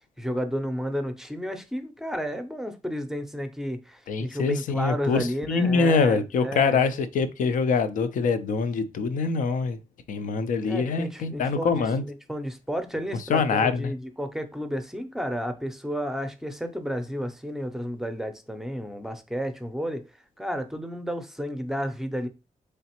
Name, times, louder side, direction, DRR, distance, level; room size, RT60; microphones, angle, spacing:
voice 1, 0.2-6.8 10.6-20.0 20.4-22.3, equal, 5° right, 0.5 m, -32 dB
voice 2, 4.1-9.8 10.1-12.0 13.3-13.9, left 4 dB, 90° left, 0.5 m, -24 dB
3.9 x 3.3 x 2.9 m
wide cardioid pair, 130°, 13 cm